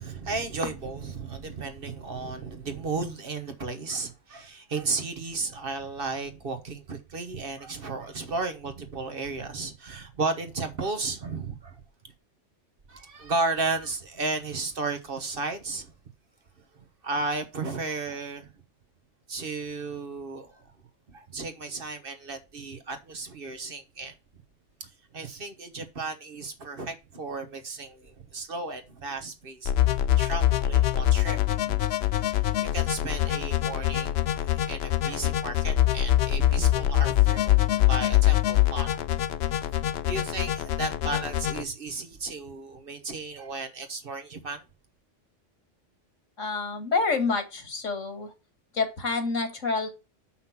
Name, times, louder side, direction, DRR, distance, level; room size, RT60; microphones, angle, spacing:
voice 1, 0.0-11.8 12.9-15.9 17.0-18.5 19.3-20.6 21.1-24.1 24.8-29.7 30.2-31.8 32.2-34.2 34.5-39.0 39.7-44.6, right 3 dB, 50° right, 1.3 m, -34 dB
sound 1, 29.7-41.6, left 13 dB, 65° left, 0.8 m, -24 dB
voice 2, 46.4-48.3 48.7-49.9, left 4 dB, 85° left, 2.3 m, -28 dB
6.2 x 5.9 x 5.8 m
omnidirectional pair, 1.3 m